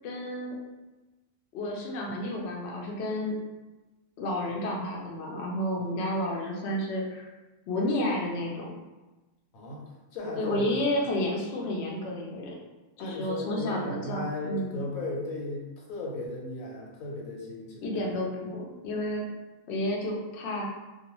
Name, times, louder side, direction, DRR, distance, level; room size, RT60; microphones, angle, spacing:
voice 1, 0.0-0.5 1.5-3.4 4.2-7.3 7.7-8.7 10.4-12.6 13.0-14.8 17.8-19.2 19.7-20.7, left 1 dB, 65° left, -2 dB, 0.7 m, -31 dB
voice 2, 10.1-10.7 13.0-18.1, left 2 dB, 85° left, -2 dB, 1.1 m, -36 dB
2.4 x 2.3 x 2.9 m, 1.1 s
omnidirectional pair, 1.4 m